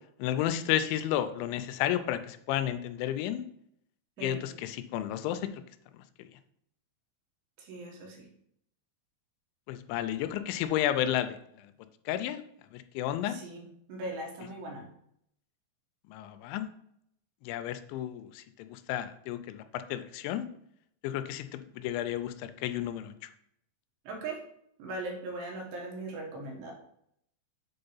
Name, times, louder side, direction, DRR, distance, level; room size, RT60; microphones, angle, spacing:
voice 1, 0.2-3.4 4.2-5.6 9.7-11.7 12.1-12.4 12.7-13.4 16.1-16.7 17.4-20.5 21.0-23.1, left 11 dB, 90° left, 11 dB, 2.9 m, -32 dB
voice 2, 7.6-8.3 13.3-14.9 24.0-24.4 24.8-26.7, right 2 dB, 75° right, 0 dB, 3.3 m, -39 dB
7.9 x 3.6 x 5.5 m, 0.72 s
omnidirectional pair, 5.2 m